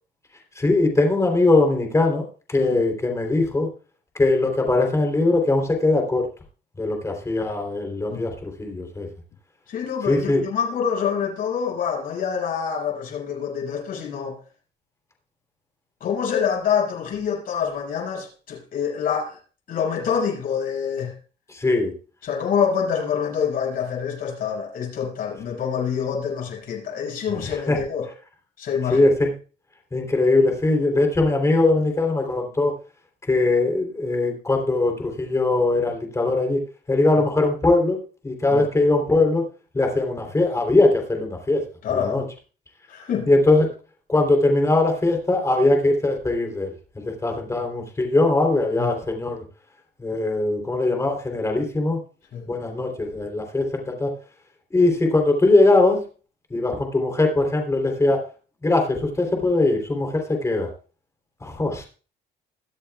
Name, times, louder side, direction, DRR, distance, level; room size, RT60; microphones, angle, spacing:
voice 1, 0.5-3.7 4.2-6.3 6.8-9.1 10.1-10.4 21.5-21.9 27.3-27.4 27.7-27.8 28.9-29.3 29.9-32.7 33.3-36.6 36.9-38.0 38.2-39.4 39.7-41.6 41.9-42.2 43.3-43.7 44.1-46.7 47.0-49.4 50.0-52.0 52.5-54.1 54.7-56.0 56.5-58.2 58.6-60.7 61.4-61.9, left 2 dB, 15° left, 3.4 m, -21 dB
voice 2, 9.7-14.4 16.0-19.4 19.7-21.1 22.2-28.1 28.6-29.0 38.5-38.7 41.8-42.3 42.9-43.3 48.8-48.9 52.3-52.4, left 7 dB, 60° left, 6.5 m, -26 dB
22.0 x 7.8 x 2.4 m
cardioid pair, 110°, 17 cm